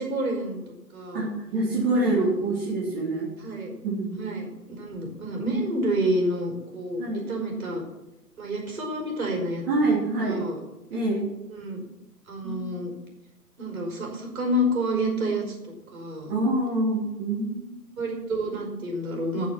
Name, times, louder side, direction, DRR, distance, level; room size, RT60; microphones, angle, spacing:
voice 1, 0.0-1.3 1.9-2.6 3.4-3.7 4.1-4.5 4.8-7.8 8.4-9.6 10.2-10.6 11.5-11.8 12.3-12.9 13.6-16.3 18.0-19.5, right 1 dB, 55° right, 1 dB, 5.5 m, -29 dB
voice 2, 1.1-3.3 3.8-4.2 7.0-7.3 9.7-10.4 10.9-11.3 12.4-12.7 16.3-17.8, right 2 dB, 35° right, -5 dB, 3.7 m, -26 dB
15.0 x 6.9 x 7.5 m, 0.97 s
figure-of-eight pair, 130°, 49 cm